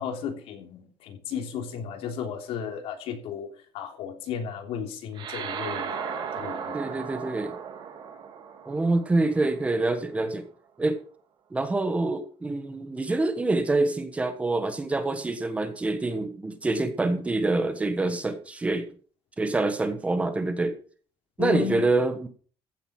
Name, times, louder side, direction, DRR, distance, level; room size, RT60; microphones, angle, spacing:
voice 1, 0.0-6.8 10.2-10.3 21.4-21.8, left 8 dB, 85° left, 4 dB, 3.2 m, -34 dB
sound 1, 5.1-9.9, right 7 dB, 50° right, 2.5 m, -36 dB
voice 2, 6.7-7.6 8.6-10.5 10.8-11.0 11.5-18.8 19.4-20.8 21.4-22.3, right 2 dB, 15° right, 8 dB, 1.4 m, -26 dB
15.0 x 8.0 x 5.9 m, 0.43 s
cardioid pair, 175°, 10 cm